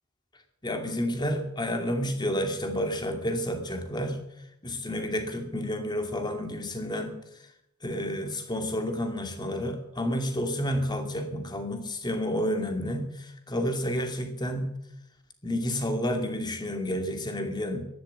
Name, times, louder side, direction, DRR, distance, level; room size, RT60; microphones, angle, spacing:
voice 1, 0.6-4.2 4.6-7.2 7.8-14.7 15.4-17.9, equal, 20° left, 6 dB, 2.3 m, -30 dB
14.0 x 11.5 x 8.5 m, 0.79 s
head